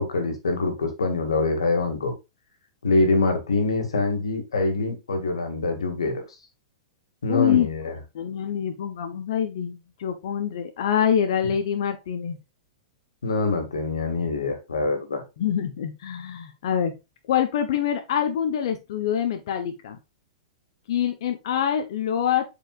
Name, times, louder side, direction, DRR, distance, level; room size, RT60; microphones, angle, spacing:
voice 1, 0.0-2.1 2.8-6.2 7.2-7.9 13.2-15.2, left 3 dB, 85° left, 5 dB, 2.2 m, -24 dB
voice 2, 7.3-7.7 8.1-12.4 15.4-16.9 17.3-20.0 20.9-22.4, left 9 dB, 65° left, 6 dB, 1.1 m, -25 dB
7.5 x 5.0 x 2.5 m, 0.25 s
hypercardioid pair, 110°, 3 cm